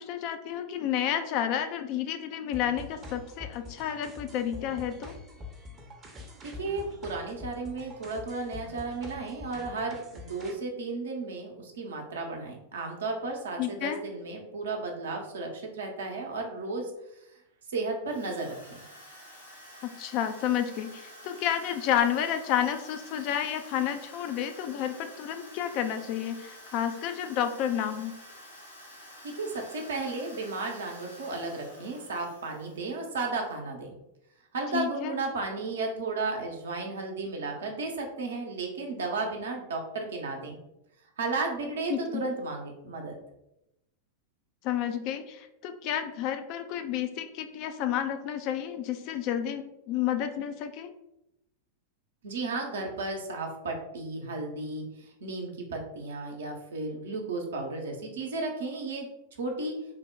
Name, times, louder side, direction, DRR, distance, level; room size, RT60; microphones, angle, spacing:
voice 1, 0.0-5.2 13.6-14.0 19.8-28.1 34.7-35.2 41.9-42.2 44.6-50.9, left 10 dB, 40° left, 8 dB, 0.3 m, -30 dB
sound 1, 2.5-10.5, left 3 dB, 25° right, 0.6 m, -45 dB
voice 2, 6.4-17.2 17.7-18.8 29.2-34.0 34.5-40.6 41.2-43.2 52.2-59.1 59.4-59.8, right 3 dB, 65° right, 2 dB, 0.7 m, -34 dB
Drill, 18.1-33.3, equal, 85° left, 0.8 m, -49 dB
3.3 x 2.1 x 3.6 m, 0.87 s
figure-of-eight pair, 90°, 0 cm